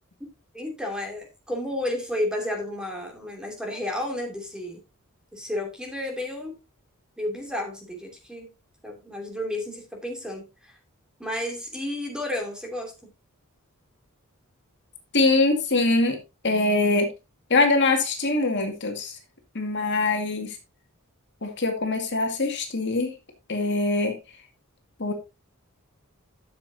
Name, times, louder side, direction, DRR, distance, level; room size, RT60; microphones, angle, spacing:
voice 1, 0.5-4.8 5.3-6.6 7.2-8.5 8.8-10.8 11.2-12.9, left 1 dB, 5° right, 2.9 m, -32 dB
voice 2, 15.1-16.2 16.4-17.1 17.5-19.2 19.5-20.6 21.4-23.1 23.5-24.2 25.0-25.1, left 2 dB, 55° left, 2.1 m, -23 dB
12.5 x 7.3 x 2.8 m
head